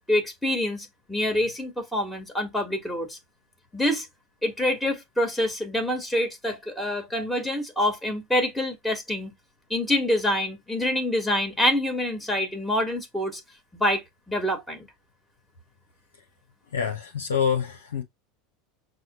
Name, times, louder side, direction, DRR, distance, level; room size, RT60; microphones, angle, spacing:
voice 1, 0.1-3.2 3.7-4.1 4.4-9.3 9.7-13.4 13.7-14.9, left 1 dB, 5° left, 1.5 m, -26 dB
voice 2, 16.7-18.0, left 7 dB, 80° left, 0.7 m, -26 dB
6.3 x 2.2 x 2.9 m
hypercardioid pair, 80°, 0 cm